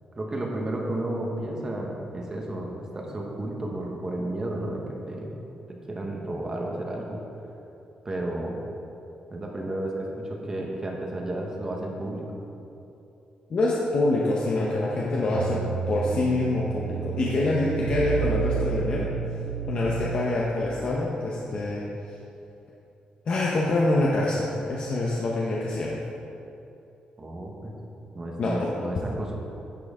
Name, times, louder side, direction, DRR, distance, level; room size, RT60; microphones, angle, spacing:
voice 1, 0.2-5.4 5.7-7.2 8.0-8.6 9.3-12.4 27.2-27.7 28.1-29.3, right 1 dB, 20° right, -1 dB, 1.2 m, -32 dB
voice 2, 13.5-15.6 15.9-19.1 19.7-21.9 23.3-26.0 28.4-28.7, left 2 dB, 45° left, -4 dB, 0.9 m, -25 dB
sound 1, 15.3-20.7, right 9 dB, 75° right, 0.6 m, -31 dB
10.5 x 7.7 x 3.7 m, 2.8 s
wide cardioid pair, 170°, 3 cm